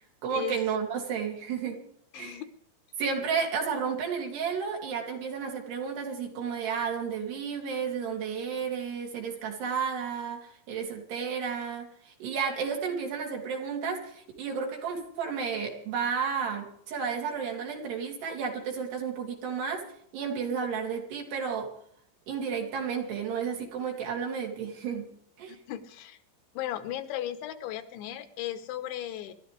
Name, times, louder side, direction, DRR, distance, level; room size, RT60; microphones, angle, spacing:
voice 1, 0.2-1.8 2.2-2.4 3.0-19.8 20.1-21.7 22.3-25.1 25.4-25.6, right 6 dB, 65° right, 0 dB, 4.8 m, -32 dB
voice 2, 2.1-2.5 25.5-26.2 26.6-29.3, left 12 dB, 80° left, 10 dB, 3.4 m, -36 dB
28.0 x 13.0 x 3.4 m, 0.65 s
omnidirectional pair, 5.2 m